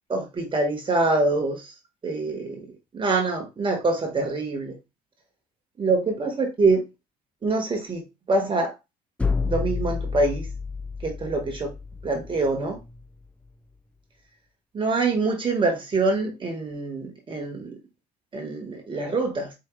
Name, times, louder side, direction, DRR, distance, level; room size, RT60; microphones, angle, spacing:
voice 1, 0.1-1.7 2.0-2.6 2.9-4.7 5.8-6.8 7.4-8.0 8.3-8.7 9.4-10.5 11.0-11.7 12.0-12.8 14.7-17.7 18.3-19.5, right 3 dB, 30° right, 2 dB, 1.3 m, -25 dB
sound 1, 9.2-13.1, left 4 dB, 5° left, 0.3 m, -30 dB
4.8 x 3.0 x 3.1 m, 0.25 s
cardioid pair, 110°, 17 cm